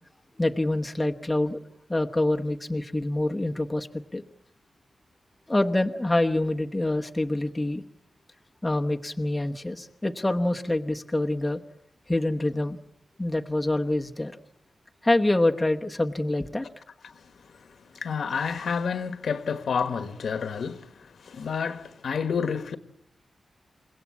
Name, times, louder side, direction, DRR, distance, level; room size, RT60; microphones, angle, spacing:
voice 1, 0.4-1.6 1.9-3.9 4.1-4.2 5.5-7.8 8.6-11.6 12.1-12.8 13.2-14.3 15.0-16.7, left 1 dB, 10° left, 1.0 m, -26 dB
voice 2, 17.0-22.8, left 6 dB, 70° left, 1.4 m, -30 dB
28.5 x 17.0 x 8.5 m
wide cardioid pair, 160°, 0 cm